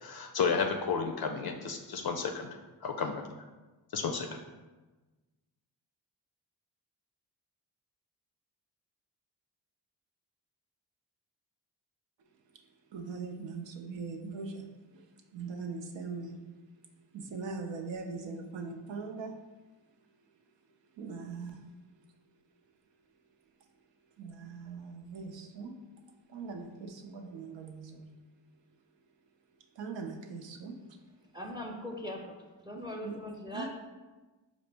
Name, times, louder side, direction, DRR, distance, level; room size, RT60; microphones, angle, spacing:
voice 1, 0.0-2.5 2.8-3.2 3.9-4.4, left 5 dB, 55° left, 4 dB, 0.5 m, -32 dB
voice 2, 12.9-14.7 14.9-15.0 15.3-16.4 17.1-19.4 21.0-21.6 24.2-25.7 26.3-28.1 29.8-30.8 33.0-33.2 33.5-33.7, right 4 dB, 75° right, 3 dB, 0.6 m, -40 dB
voice 3, 31.3-32.4 32.6-33.7, left 1 dB, 10° right, 1 dB, 0.5 m, -40 dB
4.9 x 2.0 x 3.3 m, 1.2 s
cardioid pair, 40°, 44 cm